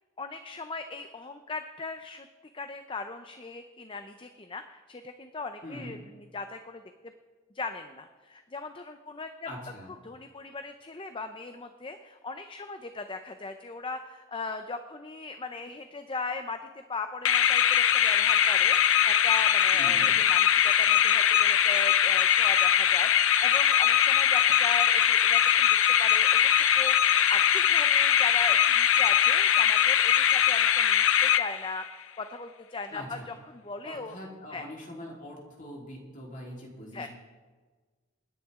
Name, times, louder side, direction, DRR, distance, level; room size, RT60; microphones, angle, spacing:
voice 1, 0.2-2.3 2.5-6.0 6.3-6.8 7.5-9.3 10.0-16.6 16.9-26.4 26.7-34.2 34.5-34.7 36.9-37.1, left 3 dB, 25° left, 8 dB, 0.6 m, -38 dB
voice 2, 5.6-6.0 9.4-9.9 19.7-20.1 32.9-33.3 33.8-37.1, left 1 dB, 40° left, -3 dB, 3.9 m, -42 dB
sound 1, 17.2-31.9, left 10 dB, 65° left, 0.7 m, -22 dB
29.0 x 10.0 x 3.7 m, 1.4 s
head